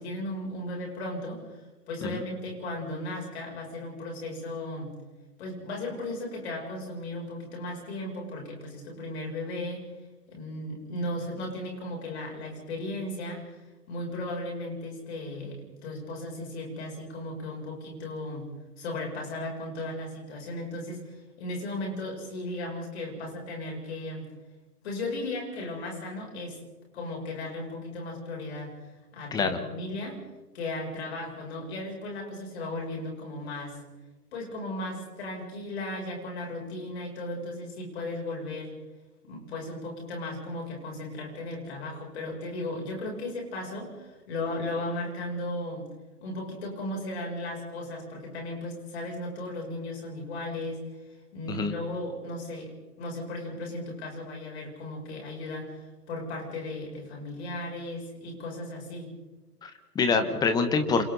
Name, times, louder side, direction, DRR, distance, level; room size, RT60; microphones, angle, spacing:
voice 1, 0.0-1.4 1.9-5.0 5.4-9.8 10.3-13.6 13.9-18.5 18.8-24.3 24.8-26.6 26.9-30.2 30.5-33.8 34.3-38.7 39.2-45.9 46.2-50.8 51.3-52.7 53.0-59.1, left 1 dB, 40° left, 0 dB, 8.0 m, -36 dB
voice 2, 59.6-61.0, left 4 dB, 10° left, 7 dB, 1.4 m, -25 dB
29.5 x 26.5 x 4.2 m, 1.2 s
figure-of-eight pair, 135°, 47 cm